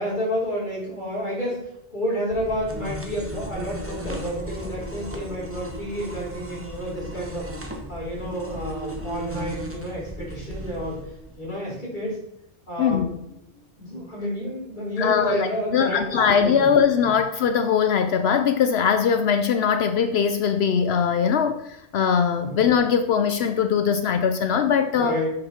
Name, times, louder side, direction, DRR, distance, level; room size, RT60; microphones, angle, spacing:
voice 1, 0.0-11.0 11.4-12.2 12.7-13.4 13.8-16.7 17.0-17.1 22.4-22.6 24.9-25.3, equal, 45° left, -7 dB, 4.4 m, -30 dB
sound 1, 2.3-11.5, equal, 15° right, 1.1 m, -36 dB
voice 2, 12.8-13.2 15.0-25.2, left 7 dB, 70° left, 9 dB, 0.8 m, -21 dB
8.8 x 6.8 x 4.3 m, 0.78 s
omnidirectional pair, 1.1 m